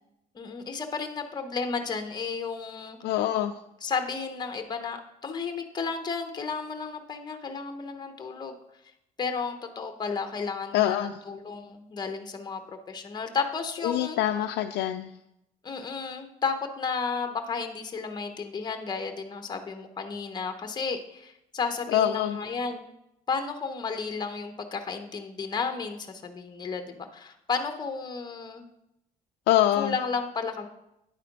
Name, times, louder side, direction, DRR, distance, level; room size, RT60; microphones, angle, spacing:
voice 1, 0.3-3.0 3.8-8.6 9.2-14.2 15.6-22.9 23.3-28.7 29.8-30.7, left 5 dB, 25° left, 6 dB, 0.9 m, -33 dB
voice 2, 3.0-3.5 10.7-11.2 13.8-15.1 21.9-22.4 29.5-30.0, left 12 dB, 75° left, 5 dB, 0.4 m, -24 dB
9.6 x 4.2 x 5.2 m, 0.83 s
cardioid pair, 110°, 17 cm